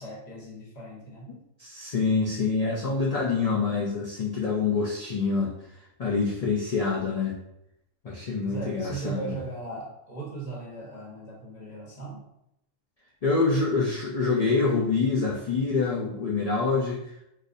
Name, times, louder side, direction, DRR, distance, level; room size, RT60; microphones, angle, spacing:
voice 1, 0.0-1.3 8.4-12.2 13.6-13.8, right 3 dB, 35° left, -4 dB, 1.1 m, -39 dB
voice 2, 1.3-5.5 6.0-7.4 8.0-9.3 13.2-17.0, left 4 dB, 85° left, -4 dB, 0.3 m, -26 dB
3.9 x 2.6 x 2.6 m, 0.81 s
omnidirectional pair, 1.3 m